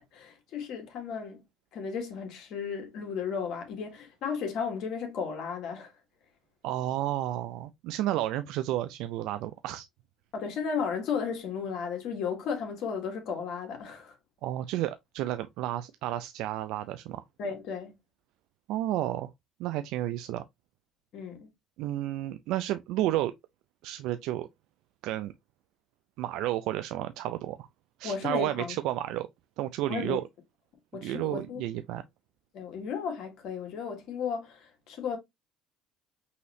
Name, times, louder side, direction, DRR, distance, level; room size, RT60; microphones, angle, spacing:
voice 1, 0.1-1.4 1.7-5.9 10.3-14.2 17.4-18.0 21.1-21.5 28.0-28.8 29.9-30.2 30.9-31.6 32.5-35.2, left 6 dB, 65° left, 1.7 m, -34 dB
voice 2, 6.6-9.8 14.4-17.2 18.7-19.3 19.6-20.4 21.8-23.3 23.8-24.5 25.0-25.3 26.2-27.7 28.0-29.3 29.6-30.2 31.0-32.0, right 14 dB, 75° right, 0.4 m, -31 dB
5.5 x 3.1 x 2.7 m
supercardioid pair, 80°, 0 cm